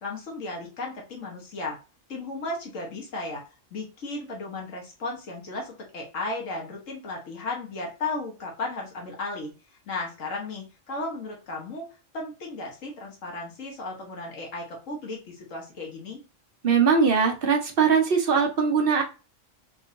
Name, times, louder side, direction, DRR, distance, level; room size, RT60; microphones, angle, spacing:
voice 1, 0.0-1.8 2.1-3.4 3.7-9.5 9.9-11.9 12.1-16.2, left 2 dB, 80° left, -1 dB, 1.5 m, -35 dB
voice 2, 16.6-19.0, right 6 dB, 50° right, 2 dB, 0.9 m, -21 dB
3.8 x 2.7 x 2.6 m, 0.32 s
omnidirectional pair, 1.3 m